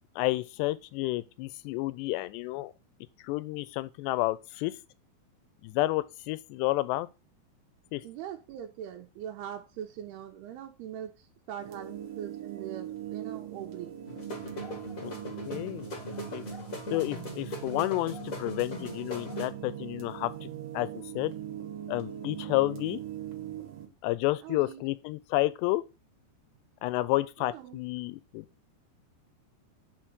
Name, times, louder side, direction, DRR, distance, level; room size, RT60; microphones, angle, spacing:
voice 1, 0.2-2.7 3.2-4.7 5.6-7.1 7.9-8.0 15.0-15.1 15.5-15.9 16.3-16.4 16.9-21.3 21.9-23.0 24.0-25.8 26.8-28.5, left 18 dB, 85° left, 2.7 m, -30 dB
voice 2, 8.0-13.9 24.4-24.8 27.5-27.8, right 10 dB, 85° right, 2.6 m, -42 dB
sound 1, 11.6-23.9, right 11 dB, 55° right, 2.0 m, -41 dB
sound 2, 14.1-19.5, equal, 40° left, 1.2 m, -39 dB
5.8 x 5.1 x 6.1 m
omnidirectional pair, 4.8 m